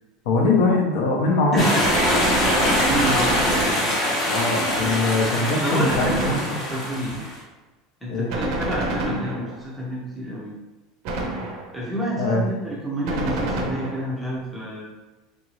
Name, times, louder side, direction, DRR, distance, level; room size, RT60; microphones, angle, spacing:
voice 1, 0.2-1.6 4.3-6.6 8.1-8.3 12.2-12.4, left 3 dB, 60° left, 1 dB, 0.7 m, -22 dB
sound 1, 1.6-7.4, left 1 dB, 30° left, 0.8 m, -23 dB
Gunshot gunfire, 1.8-4.3 5.9-6.9 8.3-9.7 11.0-11.9 13.1-14.2, right 2 dB, 45° right, 0.5 m, -28 dB
voice 2, 2.9-3.9 5.6-6.4 6.7-7.1 8.0-10.5 11.7-14.8, equal, ahead, -6 dB, 0.6 m, -28 dB
3.7 x 2.6 x 3.1 m, 1.1 s
supercardioid pair, 180°, 0 cm